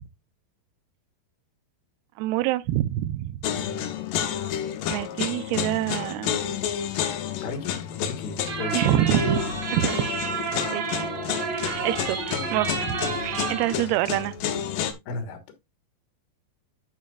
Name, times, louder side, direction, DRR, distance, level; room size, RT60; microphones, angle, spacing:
voice 1, 2.2-3.4 4.9-6.4 8.7-9.4 9.7-10.1 10.7-11.0 11.4-13.0 13.2-14.4, right 14 dB, 80° right, 2.5 m, -26 dB
sound 1, 3.4-14.9, left 9 dB, 70° left, 2.3 m, -30 dB
voice 2, 3.5-3.9 7.4-9.1 13.7-13.8 15.1-15.4, left 3 dB, 85° left, 3.5 m, -35 dB
sound 2, 8.5-13.8, right 4 dB, 45° right, 2.2 m, -30 dB
11.5 x 5.7 x 2.4 m
omnidirectional pair, 4.9 m